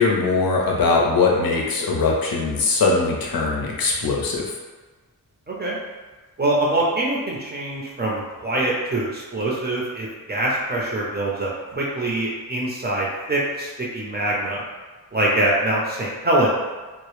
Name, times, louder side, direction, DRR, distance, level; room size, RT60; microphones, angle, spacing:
voice 1, 0.0-4.6, left 4 dB, 75° left, -2 dB, 0.5 m, -21 dB
voice 2, 5.5-5.8 6.4-14.6 15.1-16.5, right 1 dB, 25° right, -5 dB, 0.5 m, -24 dB
2.0 x 2.0 x 3.0 m, 1.3 s
wide cardioid pair, 95°, 36 cm